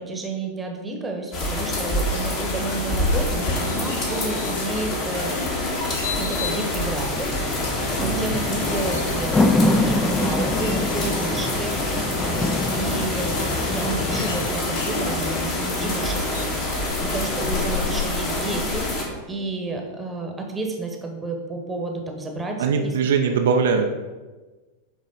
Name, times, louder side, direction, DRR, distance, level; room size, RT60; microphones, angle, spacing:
voice 1, 0.0-5.3 6.2-13.4 13.6-22.9, right 2 dB, 10° right, 2 dB, 1.1 m, -31 dB
sound 1, 1.3-19.0, left 2 dB, 35° left, 1.7 m, -26 dB
sound 2, 2.0-16.5, left 4 dB, 55° left, 0.9 m, -35 dB
sound 3, 7.1-14.5, left 2 dB, 15° left, 0.4 m, -26 dB
voice 2, 8.0-8.4 22.6-23.9, right 5 dB, 60° right, 3 dB, 0.5 m, -21 dB
8.9 x 3.6 x 4.0 m, 1.3 s
figure-of-eight pair, 90°, 0 cm